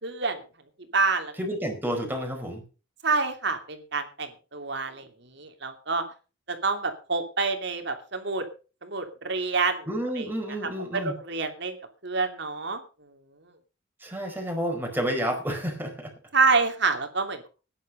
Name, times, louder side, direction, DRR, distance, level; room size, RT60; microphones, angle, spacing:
voice 1, 0.0-0.4 0.9-1.3 3.0-5.0 5.3-6.0 6.5-8.4 8.8-9.9 10.2-10.3 10.9-11.8 12.0-12.8 16.3-17.5, right 4 dB, 60° right, 6 dB, 2.8 m, -27 dB
voice 2, 1.3-2.6 9.9-11.1 14.0-16.1, equal, 10° right, 2 dB, 4.8 m, -30 dB
15.0 x 10.5 x 5.2 m, 0.34 s
head